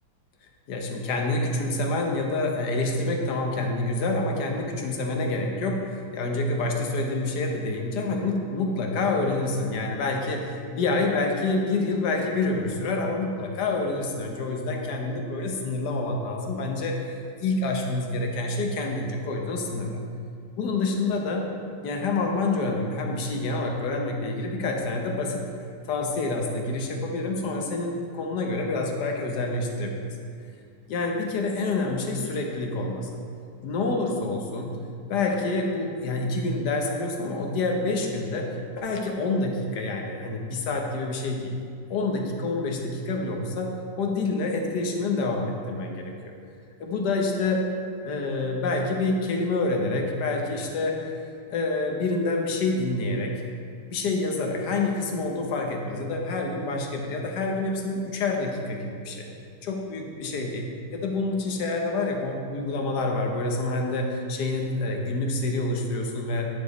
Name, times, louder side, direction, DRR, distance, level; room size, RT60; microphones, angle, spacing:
voice 1, 0.7-20.0 20.6-21.5 21.8-25.4 25.9-30.1 30.9-33.1 33.6-34.7 35.1-38.5 38.8-41.5 41.9-43.7 44.0-46.1 46.8-47.6 48.0-51.1 51.5-53.3 53.9-59.3 59.6-66.5, left 2 dB, 75° left, 2 dB, 1.5 m, -27 dB
10.0 x 5.1 x 4.0 m, 2.3 s
omnidirectional pair, 1.8 m